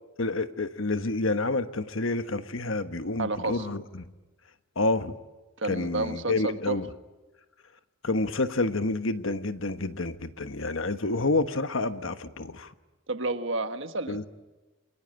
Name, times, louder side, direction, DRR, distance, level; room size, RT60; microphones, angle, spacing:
voice 1, 0.2-4.1 4.8-5.2 5.7-6.9 8.0-12.7 14.1-14.2, left 2 dB, 65° left, 1.2 m, -29 dB
voice 2, 3.2-3.7 5.6-6.8 13.1-14.3, right 2 dB, 60° right, 1.5 m, -30 dB
28.5 x 22.0 x 8.9 m
head